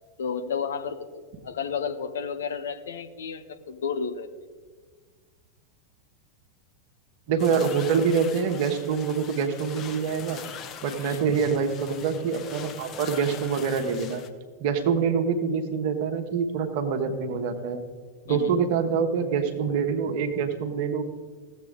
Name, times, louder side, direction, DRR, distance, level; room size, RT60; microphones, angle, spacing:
voice 1, 0.2-4.3 11.0-11.2 18.3-18.6, left 6 dB, 65° left, 8 dB, 0.7 m, -32 dB
voice 2, 7.3-10.4 10.8-14.2 14.6-17.8 18.3-21.0, right 6 dB, 45° right, 6 dB, 1.1 m, -25 dB
sound 1, 7.4-14.3, left 8 dB, 30° left, 0.7 m, -42 dB
16.5 x 7.3 x 3.7 m, 1.5 s
figure-of-eight pair, 90°, 0 cm